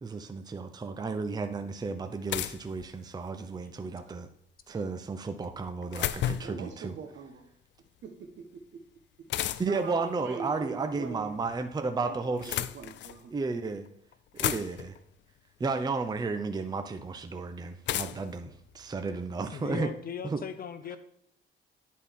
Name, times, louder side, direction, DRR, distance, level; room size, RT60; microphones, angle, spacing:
voice 1, 0.0-4.3 4.7-6.9 9.6-12.7 13.3-13.9 14.3-14.9 15.6-19.9 20.3-20.4, right 4 dB, 20° right, 7 dB, 0.5 m, -33 dB
sound 1, 2.3-3.4 5.4-6.7 9.3-9.9 11.1-11.7 12.2-13.2 13.9-14.0 14.1-15.0 16.2-16.3 17.9-19.4, left 12 dB, 65° left, 0.4 m, -34 dB
voice 2, 6.4-7.4 8.0-8.8 9.6-11.4 12.0-13.3, right 6 dB, 65° right, 4 dB, 1.3 m, -43 dB
voice 3, 19.5-21.0, left 7 dB, 50° left, 10 dB, 0.8 m, -38 dB
10.0 x 4.3 x 3.7 m, 0.74 s
cardioid pair, 90°, 20 cm